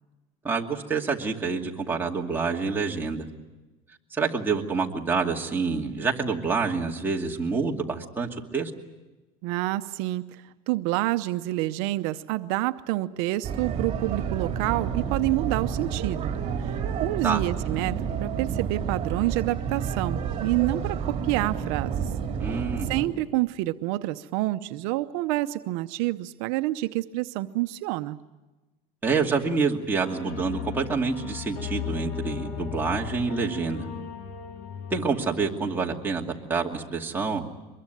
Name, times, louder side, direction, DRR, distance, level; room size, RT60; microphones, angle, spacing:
voice 1, 0.4-3.3 4.1-8.7 17.2-17.4 22.4-22.9 29.0-33.9 34.9-37.5, right 4 dB, 10° right, -1 dB, 2.5 m, -27 dB
voice 2, 9.4-22.1 22.5-28.2, right 17 dB, 75° right, 10 dB, 0.8 m, -28 dB
sound 1, 13.4-23.1, right 7 dB, 35° right, 3.8 m, -30 dB
sound 2, 30.0-35.4, left 3 dB, 75° left, 5.2 m, -41 dB
sound 3, 30.3-35.3, left 13 dB, 35° left, 1.2 m, -37 dB
24.0 x 22.0 x 9.2 m, 1.1 s
cardioid pair, 140°, 17 cm